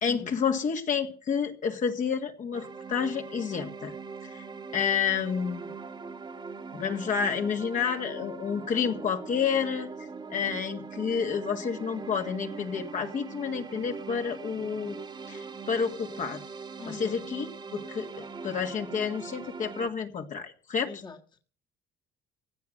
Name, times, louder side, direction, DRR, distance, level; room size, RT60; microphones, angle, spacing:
voice 1, 0.0-3.9 4.3-4.4 4.7-5.7 6.7-15.0 15.3-16.4 16.9-21.0, left 6 dB, 50° left, 4 dB, 1.8 m, -30 dB
sound 1, 2.5-19.9, right 4 dB, 25° right, 1.4 m, -41 dB
voice 2, 16.8-17.2 20.8-21.2, left 5 dB, 25° left, 4 dB, 1.7 m, -41 dB
16.5 x 9.5 x 6.6 m, 0.41 s
cardioid pair, 110°, 17 cm